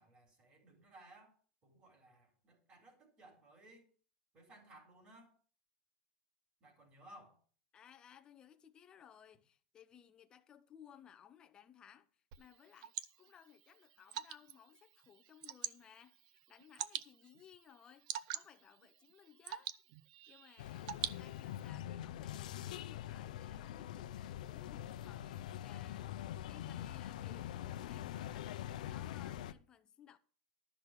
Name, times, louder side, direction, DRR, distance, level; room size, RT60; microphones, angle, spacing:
voice 1, 0.0-1.3 1.6-3.8 4.3-5.3 6.6-7.4, right 1 dB, 30° right, 4.1 m, -60 dB
voice 2, 7.7-19.7 20.3-30.2, left 9 dB, 20° left, 0.7 m, -61 dB
Water / Drip, 12.3-21.7, right 12 dB, 60° right, 0.6 m, -47 dB
sound 1, 20.6-29.5, left 12 dB, 85° left, 0.6 m, -44 dB
12.5 x 6.0 x 6.7 m
supercardioid pair, 155°, 4 cm